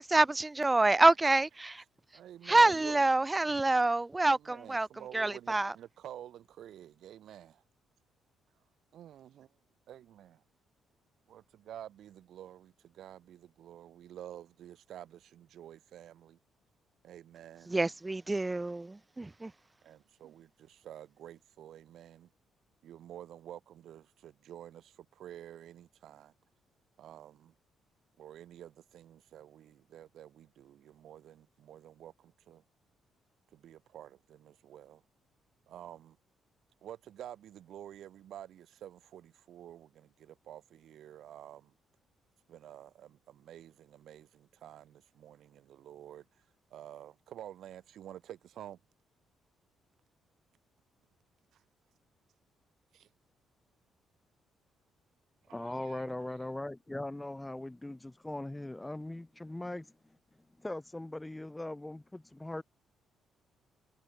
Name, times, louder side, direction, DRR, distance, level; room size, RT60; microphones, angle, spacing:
voice 1, 0.0-1.7 2.5-4.9 5.1-5.7 17.7-19.5, right 2 dB, 15° right, 0.6 m, -27 dB
voice 2, 2.1-3.0 4.2-7.5 8.9-9.5 9.9-10.4 11.3-16.4 17.0-17.9 19.8-22.3 22.8-26.3 27.0-27.5 28.2-32.6 33.5-35.0 35.7-36.2 36.8-41.7 42.5-48.8 51.5-51.6 52.9-53.1 55.5-56.4, right 11 dB, 70° right, 6.1 m, -50 dB
voice 3, 55.5-59.9 60.6-62.6, left 1 dB, 10° left, 3.8 m, -40 dB
cardioid pair, 90°, 0 cm